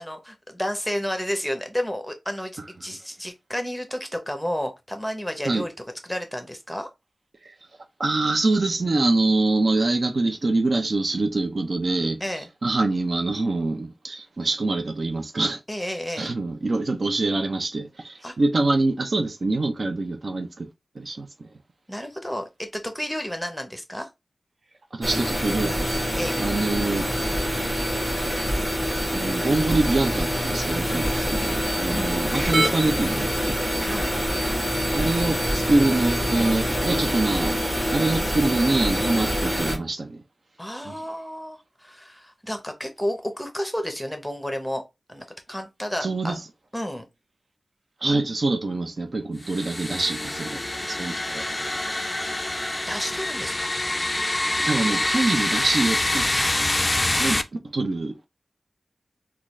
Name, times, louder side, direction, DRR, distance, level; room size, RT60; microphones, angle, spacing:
voice 1, 0.0-5.7 6.0-6.9 12.2-12.5 15.7-16.3 18.2-18.3 21.9-24.1 26.2-26.4 31.9-32.2 33.8-34.2 40.6-44.8 45.1-46.4 46.7-47.0 52.9-53.7 56.2-56.3, equal, 5° left, 0.8 m, -31 dB
voice 2, 8.0-12.2 12.6-15.6 16.2-20.7 21.0-21.5 24.9-27.1 29.1-33.9 34.9-37.6 37.9-40.2 40.8-41.0 46.0-46.4 48.0-51.7 54.6-56.3 57.2-57.4 57.7-58.2, right 2 dB, 60° right, 0.5 m, -25 dB
sound 1, 25.0-39.8, equal, 20° right, 1.3 m, -25 dB
sound 2, 49.4-57.4, left 1 dB, 20° left, 0.4 m, -26 dB
3.8 x 2.3 x 3.1 m
wide cardioid pair, 95°, 0 cm